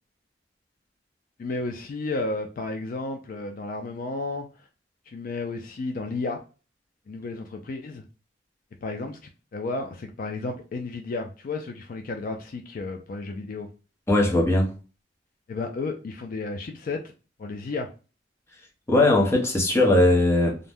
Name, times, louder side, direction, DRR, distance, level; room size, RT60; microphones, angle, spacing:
voice 1, 1.4-4.7 5.1-6.4 7.1-8.0 8.8-9.2 9.5-13.7 15.5-17.0 17.4-17.9, left 3 dB, 50° left, 0.3 m, -32 dB
voice 2, 14.1-14.7 18.9-20.6, left 2 dB, 15° left, 0.7 m, -19 dB
2.6 x 2.1 x 3.4 m
head